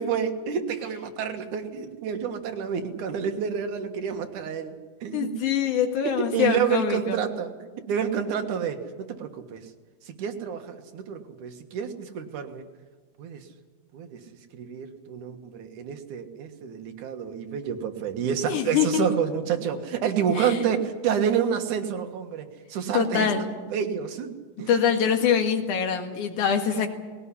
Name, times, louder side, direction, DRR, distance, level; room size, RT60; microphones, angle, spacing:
voice 1, 0.0-4.7 5.0-5.3 6.3-7.5 7.9-9.6 10.1-12.6 13.2-13.5 13.9-14.2 14.5-24.3 24.6-24.7 26.7-26.9, right 7 dB, 90° right, 6 dB, 3.0 m, -29 dB
voice 2, 5.1-7.2 18.5-19.0 20.4-20.6 22.9-23.5 24.7-26.9, left 7 dB, 90° left, 5 dB, 3.3 m, -24 dB
19.5 x 17.5 x 10.0 m, 1.4 s
omnidirectional pair, 3.4 m